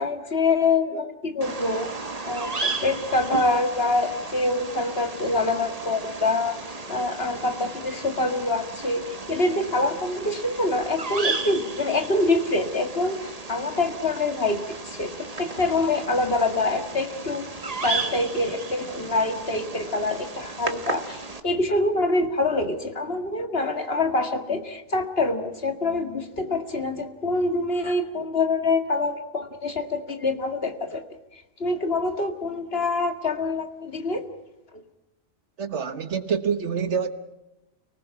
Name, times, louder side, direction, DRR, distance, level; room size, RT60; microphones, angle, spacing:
voice 1, 0.0-1.9 2.2-6.6 6.9-17.5 17.8-31.0 31.3-34.2 34.7-34.8, left 2 dB, 50° left, 2.2 m, -25 dB
Bird vocalization bird call bird song, 1.4-21.4, right 3 dB, 30° right, 1.5 m, -34 dB
voice 2, 35.6-37.1, right 6 dB, 65° right, 1.5 m, -26 dB
30.0 x 19.5 x 5.9 m
omnidirectional pair, 1.3 m